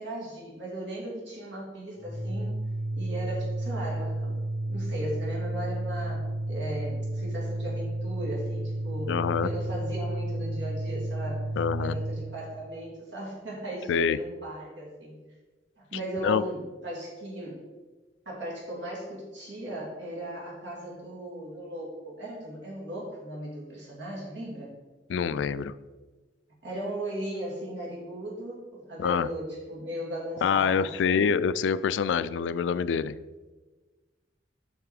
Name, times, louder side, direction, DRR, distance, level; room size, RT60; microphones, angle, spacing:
voice 1, 0.0-2.6 2.9-4.4 4.6-11.5 11.8-15.2 15.8-17.6 18.2-24.7 26.6-31.3, right 1 dB, 70° right, -4 dB, 2.8 m, -37 dB
Organ, 1.9-12.3, right 1 dB, 35° left, 2.4 m, -32 dB
voice 2, 9.1-9.5 11.6-12.0 13.9-14.2 16.2-16.4 25.1-25.7 29.0-29.3 30.4-33.1, left 6 dB, 70° left, 14 dB, 0.3 m, -26 dB
7.2 x 5.7 x 4.8 m, 1.3 s
head